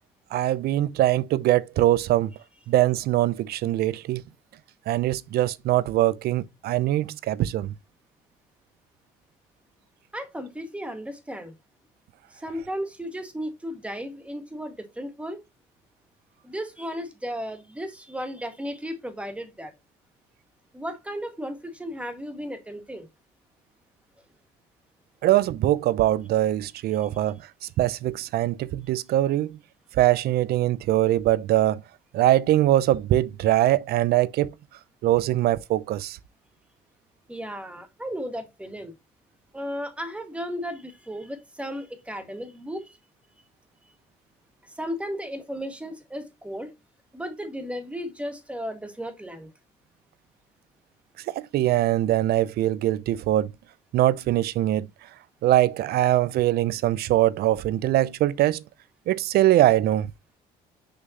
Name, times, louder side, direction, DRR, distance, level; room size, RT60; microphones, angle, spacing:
voice 1, 0.3-2.3 2.7-4.2 4.9-7.7 25.2-27.4 27.8-29.5 30.0-31.8 32.1-34.5 35.0-36.2 51.3-53.5 53.9-54.9 55.4-58.6 59.1-60.1, right 14 dB, 70° right, 0.6 m, -22 dB
voice 2, 10.1-11.5 12.3-15.4 16.4-19.7 20.7-23.1 37.3-38.9 39.5-43.0 44.6-46.7 47.1-49.5, equal, 5° right, 1.9 m, -35 dB
6.5 x 5.7 x 2.9 m
cardioid pair, 110°, 17 cm